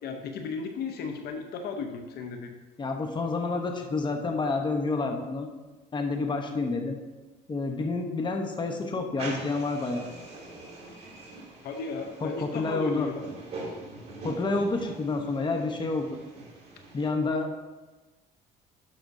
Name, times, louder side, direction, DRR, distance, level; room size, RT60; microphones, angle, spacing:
voice 1, 0.0-2.5 11.6-13.3, left 5 dB, 70° left, 5 dB, 0.9 m, -35 dB
voice 2, 2.8-5.5 5.9-7.0 7.5-10.1 12.2-13.1 14.2-16.2 16.9-17.5, left 3 dB, 25° left, 3 dB, 1.0 m, -29 dB
sound 1, 9.2-17.1, right 2 dB, 40° right, 2.6 m, -43 dB
11.5 x 5.9 x 2.7 m, 1.2 s
cardioid pair, 110°, 17 cm